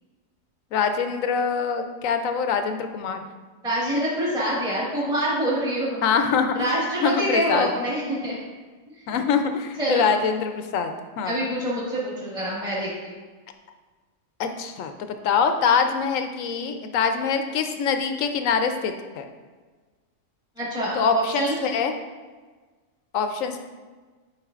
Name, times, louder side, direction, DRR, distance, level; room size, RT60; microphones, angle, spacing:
voice 1, 0.7-3.2 6.0-6.8 7.0-7.7 9.1-11.4 14.4-19.3 20.9-21.9 23.1-23.6, left 6 dB, 80° left, 7 dB, 1.0 m, -24 dB
voice 2, 3.6-6.0 6.6-8.3 9.8-10.1 11.2-13.2 20.6-21.5, right 1 dB, 5° right, -7 dB, 1.4 m, -26 dB
9.8 x 5.1 x 2.4 m, 1.4 s
omnidirectional pair, 1.4 m